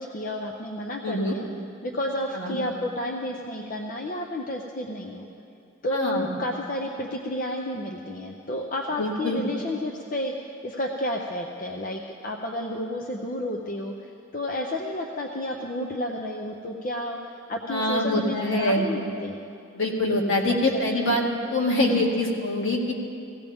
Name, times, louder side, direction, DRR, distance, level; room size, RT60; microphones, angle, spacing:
voice 1, 0.0-1.5 1.8-5.3 5.8-19.4 20.7-21.2, left 1 dB, 40° left, 1 dB, 0.6 m, -31 dB
voice 2, 1.0-1.3 2.3-2.6 5.9-6.3 9.0-9.4 17.7-18.9 19.7-21.2 21.5-22.9, left 1 dB, 65° left, -2 dB, 1.9 m, -24 dB
17.0 x 16.5 x 3.5 m, 2.5 s
head